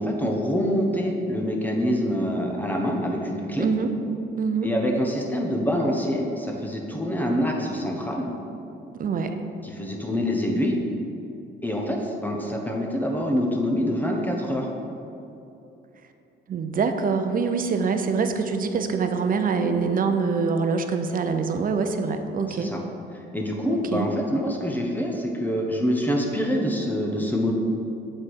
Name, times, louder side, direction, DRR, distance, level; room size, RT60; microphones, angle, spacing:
voice 1, 0.0-3.7 4.6-8.3 9.6-10.8 11.6-14.7 22.5-22.8 23.3-27.5, equal, 10° left, 0 dB, 1.0 m, -25 dB
voice 2, 3.6-3.9 4.4-4.7 8.9-9.4 16.5-22.7 23.7-24.1, right 5 dB, 45° right, 7 dB, 0.6 m, -25 dB
7.4 x 4.3 x 4.8 m, 2.8 s
cardioid pair, 90°, 20 cm